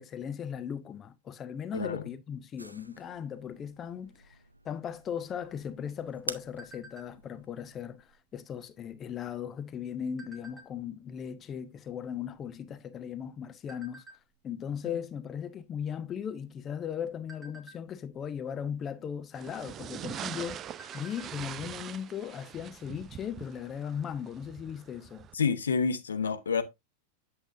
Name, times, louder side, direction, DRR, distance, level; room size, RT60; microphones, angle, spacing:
voice 1, 0.0-4.4 4.6-14.0 14.4-25.3, left 8 dB, 25° left, 0.6 m, -38 dB
voice 2, 1.7-2.0 14.8-15.0 25.3-26.6, left 5 dB, 70° left, 0.8 m, -28 dB
sound 1, 2.6-7.8, right 2 dB, 85° right, 0.5 m, -46 dB
sound 2, 5.4-7.4 7.9-8.1 8.4-8.8 9.5-11.0 11.6-11.7 11.9-13.2 13.7-14.2 14.7-15.0 15.3-15.5 15.9-16.5 16.9-18.3 19.4-19.5 19.9-20.0 20.4-21.4 21.7-21.8 22.2-22.3, right 2 dB, 5° right, 1.6 m, -52 dB
sound 3, 19.3-25.3, right 10 dB, 30° right, 0.4 m, -43 dB
8.2 x 7.8 x 2.4 m
figure-of-eight pair, 90°, 0 cm